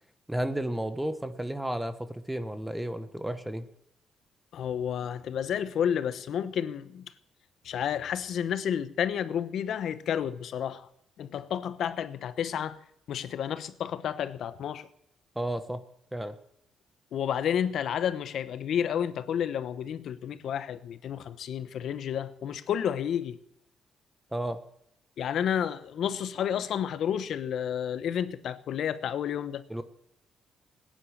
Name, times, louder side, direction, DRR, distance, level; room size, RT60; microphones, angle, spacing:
voice 1, 0.3-3.7 15.3-15.8 16.1-16.3 24.3-24.6 29.7-29.8, right 1 dB, 10° right, 1.2 m, -32 dB
voice 2, 4.5-7.1 7.6-10.9 11.2-12.8 13.1-14.9 17.1-23.4 25.2-29.6, left 9 dB, 70° left, 1.0 m, -31 dB
18.0 x 10.0 x 7.4 m
cardioid pair, 90°, 0 cm